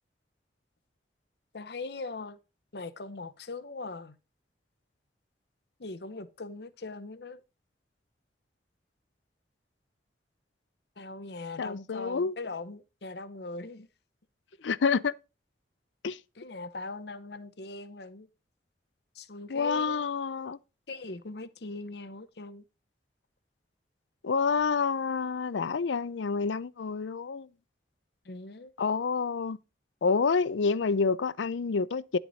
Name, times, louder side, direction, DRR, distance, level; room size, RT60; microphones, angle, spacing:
voice 1, 1.5-2.4 2.7-4.2 5.8-7.4 11.0-13.9 16.4-18.3 19.1-20.0 20.9-22.6 28.2-28.7, left 3 dB, 65° left, 0.8 m, -40 dB
voice 2, 11.6-12.3 14.6-15.1 16.0-16.2 19.5-20.6 24.2-27.5 28.8-29.6 30.0-32.2, left 5 dB, 85° left, 0.5 m, -28 dB
11.0 x 8.0 x 4.1 m
head